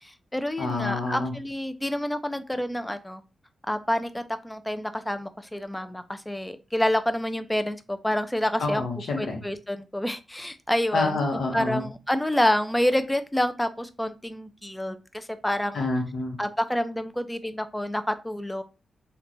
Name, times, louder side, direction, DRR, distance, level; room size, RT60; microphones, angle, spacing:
voice 1, 0.0-3.2 3.7-8.9 9.2-11.2 11.5-15.8 16.4-18.6, left 1 dB, 10° left, 10 dB, 0.3 m, -28 dB
voice 2, 0.6-1.3 8.6-9.4 10.9-11.8 15.7-16.4, left 3 dB, 75° left, 1 dB, 0.8 m, -27 dB
2.9 x 2.2 x 2.5 m, 0.30 s
cardioid pair, 95°, 0 cm